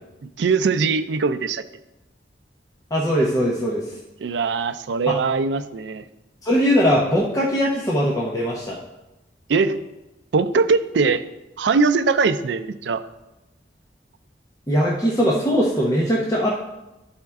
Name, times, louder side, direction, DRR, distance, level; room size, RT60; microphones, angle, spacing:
voice 1, 0.4-1.6 4.2-6.0 9.5-9.8 10.3-11.2 11.6-13.0, right 4 dB, 80° right, 10 dB, 0.4 m, -21 dB
voice 2, 2.9-4.0 5.1-5.2 6.4-8.8 14.7-16.5, equal, 20° left, -4 dB, 0.8 m, -20 dB
11.5 x 4.3 x 3.6 m, 1.0 s
head